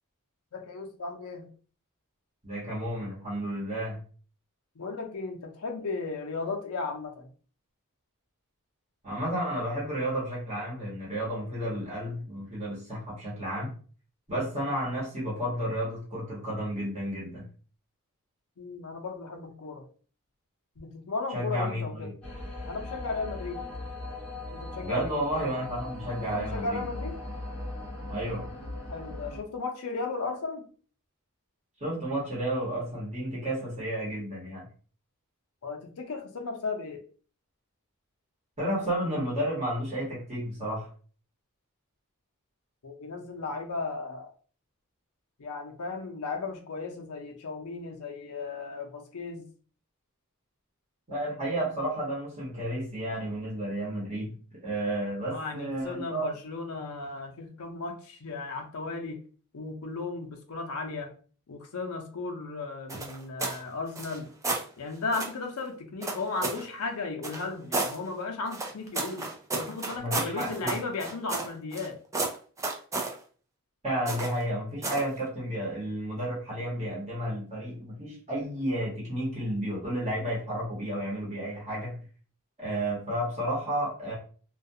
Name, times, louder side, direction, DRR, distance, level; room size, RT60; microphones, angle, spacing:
voice 1, 0.5-1.5 4.8-7.3 18.6-19.8 20.8-22.1 22.7-23.6 24.5-25.2 26.2-27.2 28.9-30.7 35.6-37.0 42.8-44.3 45.4-49.5 55.3-59.2 59.5-61.1 61.5-64.3 64.8-72.0, left 3 dB, 70° left, 3 dB, 0.6 m, -35 dB
voice 2, 2.4-4.0 9.0-13.7 14.3-17.5 21.3-22.1 24.8-26.8 28.1-28.5 31.8-34.7 38.6-40.9 51.1-54.3 54.6-56.3 70.0-70.8 73.8-82.0 82.6-84.1, right 1 dB, 30° right, -6 dB, 1.1 m, -32 dB
sound 1, 22.2-29.4, left 2 dB, 5° left, 1.0 m, -39 dB
sound 2, 62.9-63.6 63.9-64.7 65.1-65.4 66.0-66.7 67.2-68.0 68.5-71.9 72.1-73.1 74.1-74.4 74.8-75.1, right 3 dB, 15° right, 0.4 m, -32 dB
2.4 x 2.3 x 2.7 m, 0.41 s
head